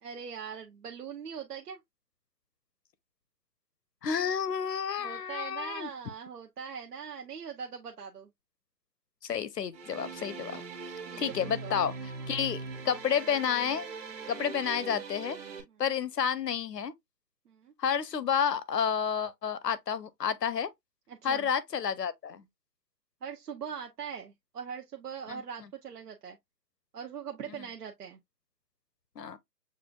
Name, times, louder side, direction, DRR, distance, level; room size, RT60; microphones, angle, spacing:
voice 1, 0.0-1.8 5.0-8.3 11.0-11.8 15.7-15.8 17.5-17.7 21.1-21.5 23.2-26.4 26.9-28.2, right 7 dB, 70° right, 0.8 m, -41 dB
voice 2, 4.0-5.9 9.2-10.6 11.2-11.9 12.3-13.9 14.3-15.4 15.8-16.9 17.8-20.7 21.2-22.4 25.3-25.4 27.5-27.6 29.2-29.4, left 7 dB, 75° left, 0.8 m, -30 dB
sound 1, 9.7-15.6, right 4 dB, 35° right, 1.4 m, -41 dB
6.6 x 2.5 x 2.3 m
hypercardioid pair, 155°, 50 cm